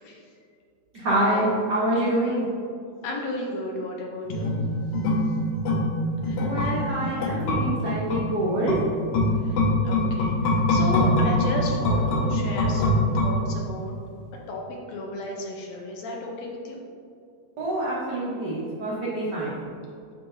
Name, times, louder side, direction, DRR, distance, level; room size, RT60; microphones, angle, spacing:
voice 1, 0.9-2.4 6.4-8.8 17.6-19.6, right 1 dB, 90° right, -7 dB, 0.9 m, -26 dB
voice 2, 3.0-4.7 6.3-6.4 9.3-13.9 14.5-16.8, left 2 dB, 70° left, -1 dB, 1.8 m, -34 dB
sound 1, 4.3-13.8 14.1-14.2, left 1 dB, 90° left, 2.3 m, -24 dB
9.7 x 3.9 x 2.7 m, 2.4 s
omnidirectional pair, 3.4 m